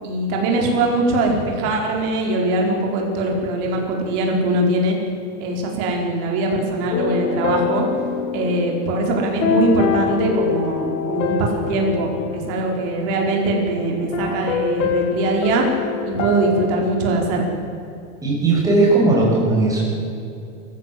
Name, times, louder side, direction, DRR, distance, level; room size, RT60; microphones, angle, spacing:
voice 1, 0.0-5.0 5.4-7.9 8.3-15.7 16.0-17.4, right 2 dB, 40° right, 1 dB, 4.7 m, -21 dB
sound 1, 6.9-13.5 14.1-16.7, left 6 dB, 55° left, 3.0 m, -25 dB
voice 2, 18.2-19.8, right 2 dB, 10° right, -4 dB, 6.5 m, -17 dB
24.5 x 15.5 x 7.8 m, 2.7 s
supercardioid pair, 170°, 45 cm